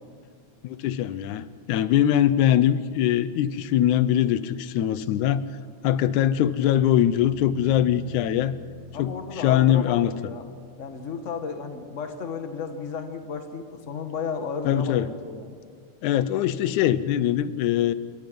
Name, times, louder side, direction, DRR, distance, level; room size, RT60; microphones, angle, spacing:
voice 1, 0.6-5.5 5.8-8.6 9.0-10.1 14.7-15.1 16.0-17.9, left 11 dB, 80° left, 15 dB, 2.2 m, -22 dB
sound 1, 7.1-11.2, left 1 dB, 20° right, 5.2 m, -44 dB
voice 2, 8.9-10.4 10.8-15.6, left 5 dB, 35° left, 7 dB, 1.3 m, -33 dB
27.5 x 22.5 x 5.3 m, 2.1 s
omnidirectional pair, 3.5 m